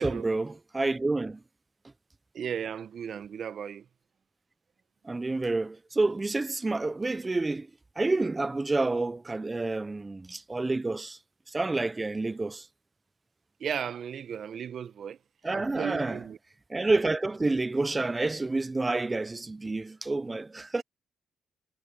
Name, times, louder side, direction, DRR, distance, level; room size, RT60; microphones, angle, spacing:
voice 1, 0.0-1.4 5.0-7.7 8.0-11.2 11.5-12.7 15.4-16.2 16.7-20.8, right 2 dB, 20° right, 0.6 m, -29 dB
voice 2, 2.3-3.8 13.6-15.2 15.5-16.4, right 8 dB, 60° right, 1.1 m, -35 dB
supercardioid pair, 65°, 0 cm